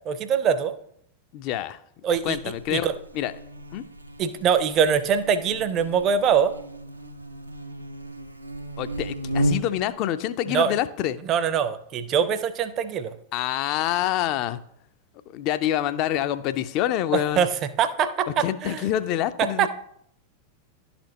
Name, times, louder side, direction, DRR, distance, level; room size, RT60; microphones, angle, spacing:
voice 1, 0.1-0.7 2.0-2.4 2.7-2.9 4.2-6.5 10.5-10.7 11.2-13.2 17.1-18.8 19.4-19.7, right 7 dB, 35° right, 12 dB, 0.5 m, -23 dB
voice 2, 1.3-1.8 2.2-2.9 3.1-3.3 3.7-3.8 8.8-11.2 13.3-14.6 15.3-17.5 18.4-19.7, left 12 dB, 40° left, 13 dB, 0.4 m, -26 dB
Buzz, 2.1-9.9, right 1 dB, 85° right, 0.4 m, -34 dB
11.5 x 4.2 x 2.8 m, 0.70 s
figure-of-eight pair, 90°, 0 cm